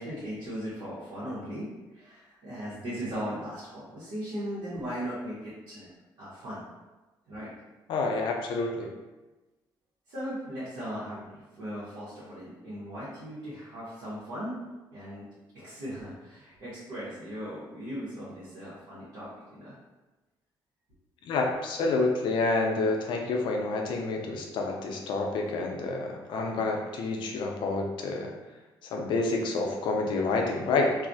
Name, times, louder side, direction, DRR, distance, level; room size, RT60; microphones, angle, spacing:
voice 1, 0.0-1.7 1.9-5.9 6.2-6.6 7.3-7.6 10.1-14.6 14.9-15.3 15.5-19.7, equal, 90° right, -11 dB, 0.8 m, -38 dB
voice 2, 7.9-8.9 21.3-28.3 28.9-31.0, left 3 dB, 75° left, 1 dB, 0.4 m, -28 dB
2.3 x 2.0 x 2.6 m, 1.1 s
cardioid pair, 130°, 8 cm